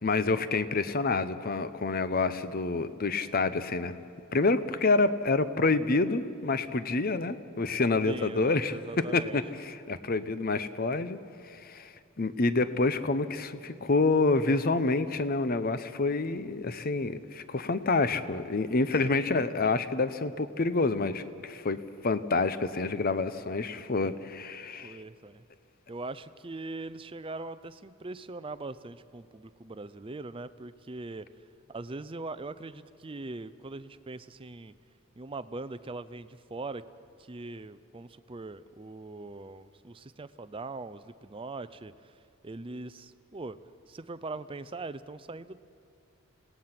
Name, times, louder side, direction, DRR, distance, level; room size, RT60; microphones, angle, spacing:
voice 1, 0.0-3.9 4.3-8.7 9.1-11.2 11.4-21.8 22.0-25.0, left 3 dB, 40° left, 13 dB, 0.7 m, -28 dB
voice 2, 8.0-9.4 19.2-19.4 24.8-25.4 25.9-31.3 31.7-34.7 35.2-36.8 37.2-43.6 43.9-45.6, right 2 dB, 25° right, 13 dB, 0.5 m, -41 dB
27.0 x 17.5 x 5.9 m, 2.5 s
head